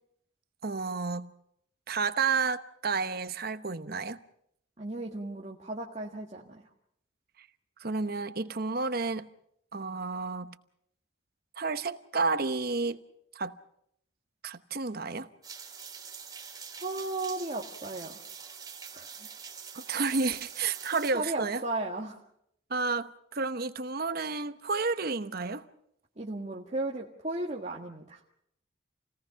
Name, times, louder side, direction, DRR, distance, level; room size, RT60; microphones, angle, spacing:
voice 1, 0.6-1.3 1.9-4.2 7.8-9.3 9.7-10.5 11.6-13.0 13.3-13.5 14.4-15.3 19.7-21.6 22.7-25.6, right 4 dB, 50° right, 1.0 m, -31 dB
voice 2, 4.8-6.6 16.7-18.1 18.9-19.1 20.8-22.2 26.2-28.2, right 2 dB, 35° right, 1.6 m, -35 dB
sound 1, 15.4-21.1, right 6 dB, 20° right, 3.3 m, -45 dB
28.5 x 18.5 x 5.8 m
head